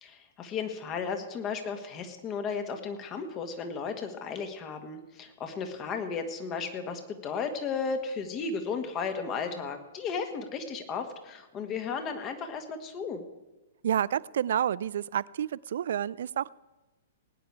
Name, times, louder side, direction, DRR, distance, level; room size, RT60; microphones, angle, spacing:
voice 1, 0.0-13.2, left 5 dB, 30° left, 6 dB, 1.7 m, -34 dB
voice 2, 13.8-16.5, right 10 dB, 60° right, 22 dB, 0.3 m, -29 dB
19.5 x 9.4 x 4.7 m, 1.1 s
figure-of-eight pair, 110°, 0 cm